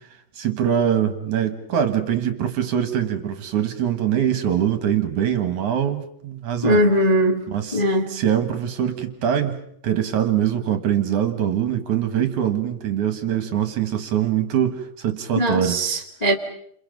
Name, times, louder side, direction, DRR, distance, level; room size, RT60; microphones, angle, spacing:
voice 1, 0.4-6.8 7.5-7.8 8.1-15.8, right 9 dB, 60° right, 8 dB, 2.5 m, -23 dB
voice 2, 6.6-7.4 7.7-8.2 15.3-16.3, equal, 35° left, 2 dB, 0.6 m, -20 dB
29.5 x 28.0 x 5.3 m, 0.67 s
omnidirectional pair, 4.7 m